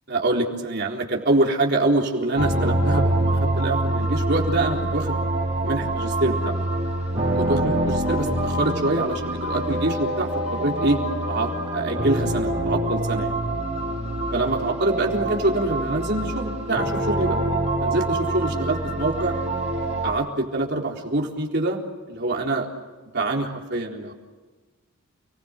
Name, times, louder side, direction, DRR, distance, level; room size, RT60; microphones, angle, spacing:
voice 1, 0.1-5.2 5.6-6.5 7.3-11.0 11.3-13.3 14.3-17.4 17.8-19.3 20.0-21.8 22.1-22.7 23.1-24.1, right 2 dB, 50° right, -1 dB, 4.0 m, -25 dB
sound 1, 2.3-20.1, right 1 dB, 30° right, 6.9 m, -25 dB
30.0 x 21.0 x 7.9 m, 1.3 s
head